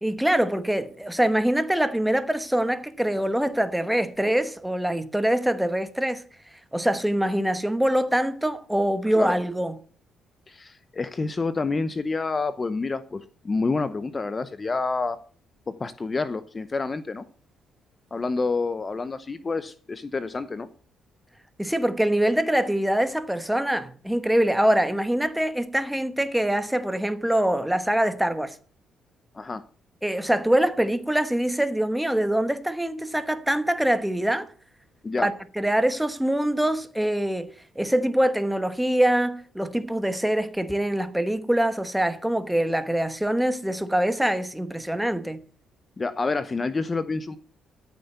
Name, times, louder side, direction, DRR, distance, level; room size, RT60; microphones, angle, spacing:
voice 1, 0.0-6.2 6.7-9.7 21.6-28.5 30.0-34.5 35.2-45.4, right 1 dB, 5° right, 1.2 m, -24 dB
voice 2, 10.5-15.2 15.7-17.2 18.1-20.7 29.3-29.6 35.0-35.3 46.0-47.4, left 3 dB, 25° left, 0.7 m, -28 dB
14.0 x 6.6 x 6.9 m
cardioid pair, 105°, 0 cm